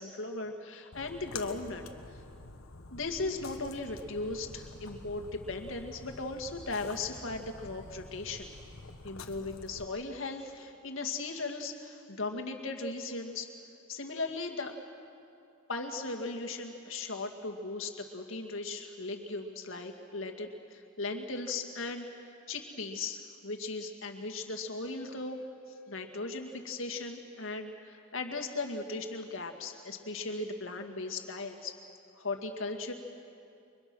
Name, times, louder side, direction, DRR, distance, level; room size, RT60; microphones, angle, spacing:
voice 1, 0.0-1.8 2.9-8.5 9.0-13.5 13.9-14.8 15.7-22.1 22.5-25.4 25.7-31.8 32.2-32.9, left 3 dB, 70° left, 4 dB, 2.1 m, -37 dB
Splash splatter, 0.9-9.8, left 3 dB, 85° left, 1.3 m, -48 dB
30.0 x 24.0 x 6.3 m, 2.6 s
head